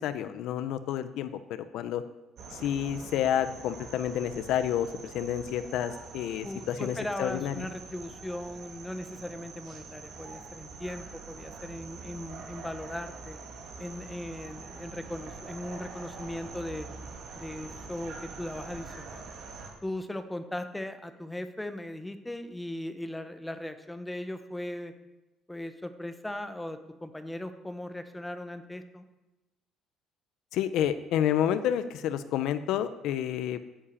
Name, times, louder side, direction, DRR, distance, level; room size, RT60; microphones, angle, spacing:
voice 1, 0.0-2.0 2.5-7.7 30.5-33.6, left 10 dB, 70° left, 11 dB, 0.6 m, -30 dB
sound 1, 2.4-19.7, right 4 dB, 60° right, 2.5 m, -45 dB
voice 2, 6.4-13.4 13.8-16.9 17.4-19.3 19.8-24.9 25.5-29.0, left 1 dB, 5° left, 9 dB, 0.9 m, -38 dB
10.0 x 7.4 x 8.6 m, 1.0 s
cardioid pair, 150°, 0 cm